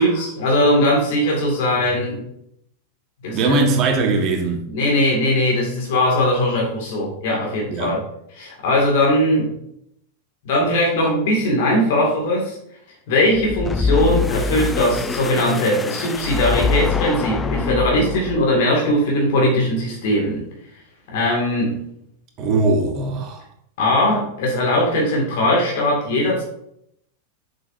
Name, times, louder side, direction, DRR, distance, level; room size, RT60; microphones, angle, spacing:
voice 1, 0.0-2.2 3.2-3.6 4.7-8.0 8.3-9.5 10.4-12.6 13.1-20.5 21.1-21.8 23.8-26.4, left 1 dB, 50° left, 2.2 m, -19 dB
voice 2, 3.3-4.7 7.7-7.9 22.4-23.4, right 3 dB, 35° right, 1.5 m, -20 dB
sound 1, 13.4-18.6, left 5 dB, 15° left, 0.4 m, -24 dB
7.4 x 6.4 x 2.7 m
figure-of-eight pair, 90°, 0 cm